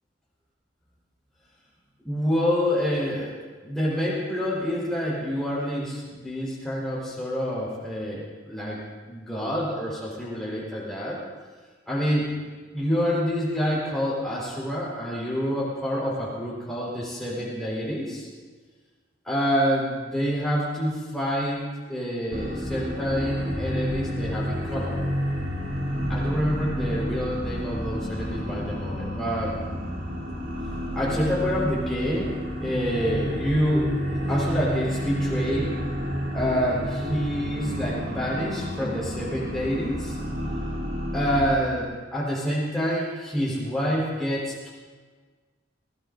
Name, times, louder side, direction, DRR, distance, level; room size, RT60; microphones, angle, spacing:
voice 1, 2.0-3.3 3.6-8.8 9.1-11.2 11.9-12.3 12.7-18.3 19.2-21.6 21.9-24.9 26.1-29.5 30.9-32.3 32.6-35.7 36.3-40.2 41.1-44.7, equal, ahead, -7 dB, 4.4 m, -27 dB
sound 1, 22.3-41.5, equal, 60° right, 3.8 m, -30 dB
20.0 x 19.0 x 2.7 m, 1.5 s
head